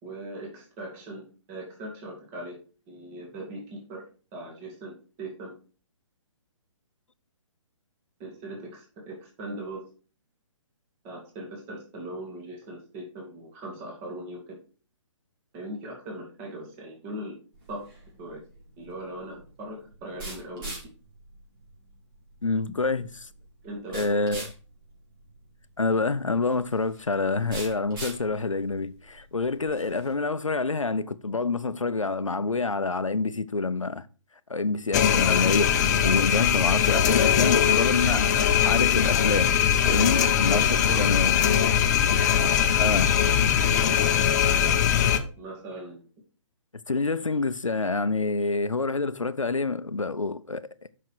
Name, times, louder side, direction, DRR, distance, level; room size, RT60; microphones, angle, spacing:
voice 1, 0.0-2.6 2.9-4.0 4.3-5.5 8.2-9.9 11.0-14.6 15.5-17.4 17.7-17.9 18.2-18.4 18.8-20.8 22.7-22.8 23.6-24.1 40.1-40.3 40.9-41.3 41.6-41.8 43.6-43.8 45.1-46.0, right 1 dB, 25° right, 2.3 m, -39 dB
sound 1, 17.5-30.1, right 2 dB, 45° right, 4.8 m, -43 dB
voice 2, 22.4-23.3 23.9-24.5 25.8-34.0 34.5-39.5 39.8-41.4 42.7-43.1 46.9-50.6, left 3 dB, 85° left, 0.6 m, -27 dB
sound 2, 34.9-45.2, left 9 dB, 35° left, 0.7 m, -21 dB
8.0 x 6.0 x 4.5 m
figure-of-eight pair, 130°, 16 cm